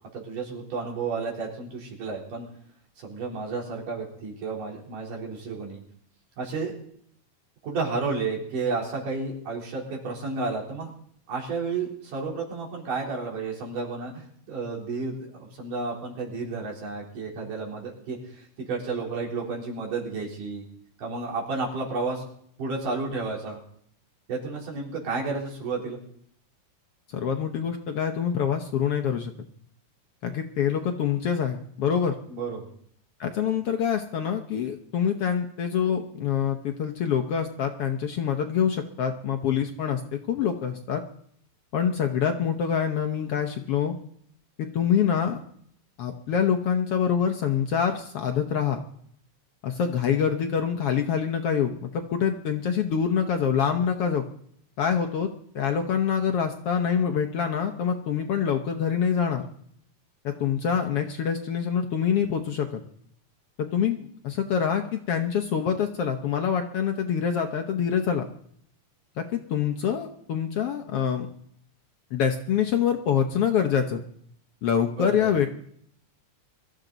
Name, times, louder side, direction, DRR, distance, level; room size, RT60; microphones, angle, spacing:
voice 1, 0.1-2.5 3.0-5.8 6.4-6.7 7.6-10.9 11.3-20.6 21.0-22.2 22.6-23.6 24.3-26.0 32.3-32.7 75.0-75.3, right 4 dB, 85° right, -2 dB, 5.3 m, -32 dB
voice 2, 27.1-29.3 30.2-32.2 33.2-41.0 41.7-43.9 44.6-45.4 46.0-48.8 49.6-54.2 54.8-55.3 55.6-59.4 60.2-62.8 63.6-68.3 69.2-71.3 72.1-74.0 74.6-75.5, left 8 dB, 65° left, 5 dB, 1.6 m, -25 dB
23.5 x 14.0 x 4.0 m, 0.65 s
omnidirectional pair, 3.6 m